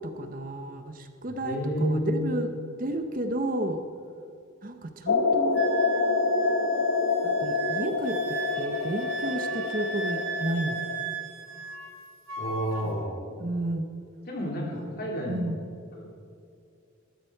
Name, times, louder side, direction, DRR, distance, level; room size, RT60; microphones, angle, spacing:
voice 1, 0.0-2.5 2.8-3.8 4.6-5.6 7.2-10.8 12.8-13.0 13.4-13.9 15.3-15.6, right 1 dB, 40° right, 7 dB, 0.7 m, -32 dB
voice 2, 1.4-2.2 12.4-13.1 14.3-15.4 15.9-16.0, equal, 45° left, -2 dB, 3.1 m, -30 dB
sound 1, 5.1-11.0, left 4 dB, 70° left, 0.9 m, -27 dB
Wind instrument woodwind instrument, 5.6-12.0 12.3-12.9, right 5 dB, 75° right, 1.5 m, -36 dB
13.5 x 13.5 x 4.6 m, 2.4 s
head